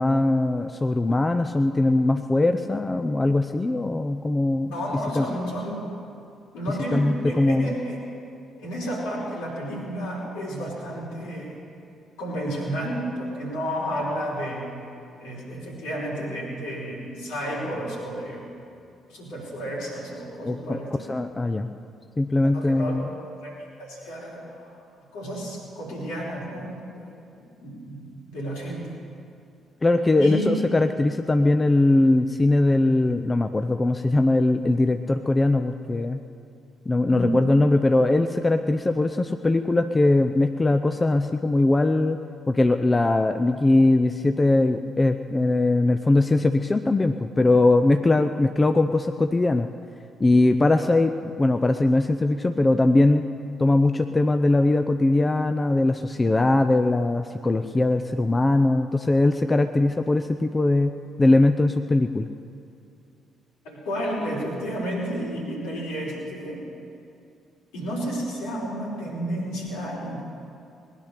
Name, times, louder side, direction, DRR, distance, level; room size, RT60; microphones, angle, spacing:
voice 1, 0.0-4.7 5.2-5.3 6.9-7.7 20.4-20.8 21.1-21.7 22.2-23.1 29.8-36.2 36.9-42.2 42.5-49.7 50.2-53.3 53.6-60.9 61.2-62.3, left 2 dB, 25° left, 8 dB, 0.6 m, -21 dB
voice 2, 4.7-5.8 6.5-8.0 8.6-11.5 12.2-14.7 15.2-18.5 19.0-21.1 22.4-24.8 25.1-27.2 27.6-29.0 30.2-30.6 37.1-37.4 63.6-66.7 67.7-70.2, equal, 70° left, -5 dB, 4.4 m, -31 dB
20.0 x 10.5 x 6.7 m, 2.5 s
figure-of-eight pair, 45°, 0 cm